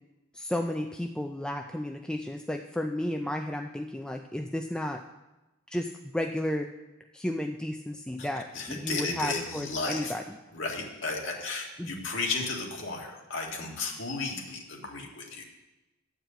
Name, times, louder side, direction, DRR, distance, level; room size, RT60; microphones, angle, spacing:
voice 1, 0.3-5.0 5.7-6.7 7.1-10.4 11.8-11.9, left 1 dB, 5° left, 3 dB, 0.3 m, -33 dB
voice 2, 8.6-10.1 10.5-15.4, left 3 dB, 65° left, -1 dB, 1.8 m, -34 dB
10.5 x 4.7 x 7.8 m, 1.0 s
head